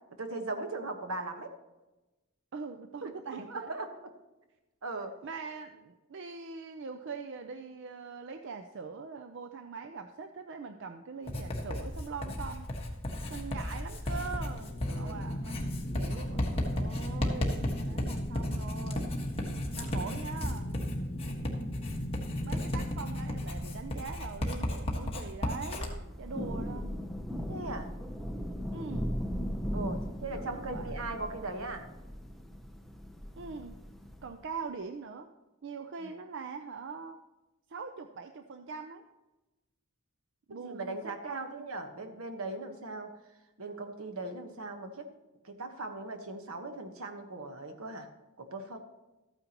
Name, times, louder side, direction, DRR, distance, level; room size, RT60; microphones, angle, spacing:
voice 1, 0.2-1.5 3.0-3.1 3.4-3.9 4.8-5.2 14.8-15.3 15.9-16.2 17.8-18.2 27.5-27.9 29.7-31.9 36.0-36.1 40.5-43.1 43.6-45.1 45.4-48.1 48.4-48.8, right 2 dB, 80° right, 5 dB, 1.2 m, -39 dB
voice 2, 2.5-3.7 5.2-12.7 13.3-19.2 19.7-20.7 22.4-27.0 28.7-29.1 30.6-30.9 33.4-33.8 34.2-35.3 35.6-37.2 37.7-39.0 40.5-41.6, right 5 dB, 60° right, 6 dB, 0.5 m, -42 dB
Writing, 11.3-25.9, left 1 dB, 25° left, 1.5 m, -35 dB
sound 1, 14.1-25.0, left 1 dB, 65° left, 1.1 m, -38 dB
Thunder / Rain, 25.8-34.4, equal, ahead, 0.6 m, -38 dB
13.5 x 9.1 x 2.9 m, 1.1 s
head